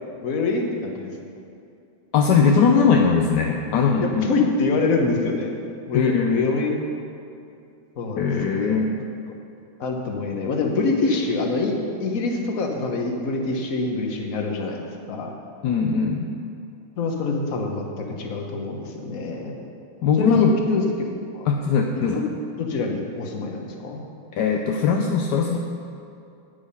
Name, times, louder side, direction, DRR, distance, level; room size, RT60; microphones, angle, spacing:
voice 1, 0.2-1.1 4.0-5.6 5.9-6.8 8.0-8.8 9.8-15.3 17.0-19.6 20.2-20.8 21.3-21.5 22.0-22.3 22.6-24.0, left 3 dB, 50° left, 2 dB, 1.3 m, -25 dB
voice 2, 2.1-4.3 5.9-6.5 8.2-8.9 15.6-16.3 20.0-20.5 21.4-22.2 24.3-25.6, left 5 dB, 70° left, 2 dB, 1.0 m, -20 dB
9.4 x 8.3 x 5.6 m, 2.6 s
omnidirectional pair, 2.4 m